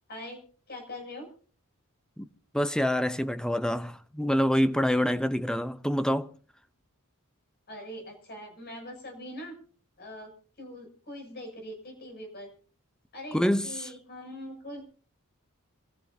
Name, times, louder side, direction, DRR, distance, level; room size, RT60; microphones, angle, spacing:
voice 1, 0.7-1.3 7.7-9.5 10.0-10.3 10.6-12.5 13.1-13.4 13.6-14.8, left 1 dB, 45° left, 7.5 m, -42 dB
voice 2, 2.5-6.3 13.3-13.9, equal, 5° left, 0.7 m, -26 dB
27.5 x 14.5 x 2.8 m
head